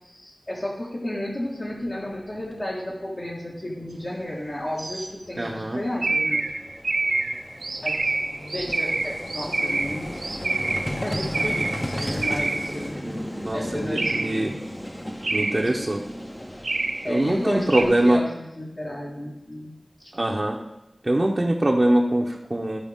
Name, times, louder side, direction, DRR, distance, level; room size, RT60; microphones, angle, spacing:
voice 1, 0.0-6.4 7.8-8.2 8.5-10.2 11.0-13.0 13.5-14.6 15.5-16.1 17.0-19.8 20.0-20.1 20.4-20.5, left 1 dB, 50° left, -6 dB, 1.8 m, -33 dB
Vehicle, 2.1-2.2 2.4-2.5 4.5-4.6 4.8-18.2, equal, 15° left, 0.8 m, -35 dB
sound 1, 4.8-5.1 6.0-12.8 14.0-14.5 15.2-15.8 16.6-17.2 17.7-17.8, right 3 dB, 90° right, 0.8 m, -27 dB
voice 2, 5.4-5.8 13.0-14.5 15.3-16.0 17.0-18.2 20.1-20.6 21.0-22.8, right 1 dB, 35° right, -1 dB, 0.8 m, -23 dB
14.0 x 4.8 x 3.6 m, 0.95 s
wide cardioid pair, 70°, 0 cm